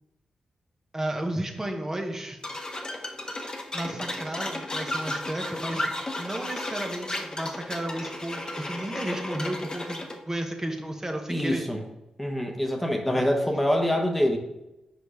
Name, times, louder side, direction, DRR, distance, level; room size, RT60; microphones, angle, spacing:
voice 1, 0.9-2.4 3.7-5.9 6.2-11.6 13.2-13.3, right 1 dB, 20° right, 3 dB, 1.2 m, -33 dB
sound 1, 2.4-10.2, left 1 dB, 30° left, 1.1 m, -34 dB
voice 2, 11.3-11.8 12.2-14.4, equal, 5° left, 2 dB, 1.1 m, -25 dB
5.1 x 4.6 x 5.0 m, 0.92 s
supercardioid pair, 50°, 2 cm